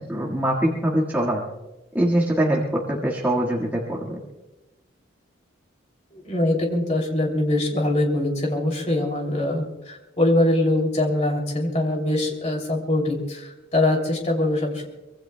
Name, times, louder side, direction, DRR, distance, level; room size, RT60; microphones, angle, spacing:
voice 1, 0.0-1.4 1.9-4.2, right 1 dB, 10° right, -5 dB, 1.8 m, -23 dB
voice 2, 6.1-14.9, left 1 dB, 35° left, 1 dB, 3.0 m, -23 dB
24.0 x 22.0 x 2.3 m, 1.0 s
head